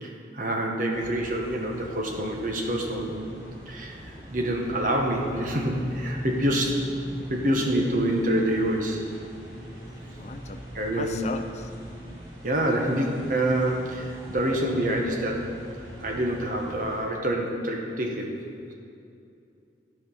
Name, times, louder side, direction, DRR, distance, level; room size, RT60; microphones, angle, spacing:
voice 1, 0.0-3.1 3.7-7.0 7.3-9.0 10.7-11.3 12.4-15.5 16.0-18.3, right 1 dB, 50° right, 1 dB, 1.2 m, -26 dB
sound 1, 0.9-17.0, equal, 25° right, 2.3 m, -41 dB
voice 2, 10.2-10.6 10.9-11.7, left 3 dB, 40° left, 7 dB, 0.4 m, -36 dB
12.0 x 4.9 x 5.7 m, 2.5 s
head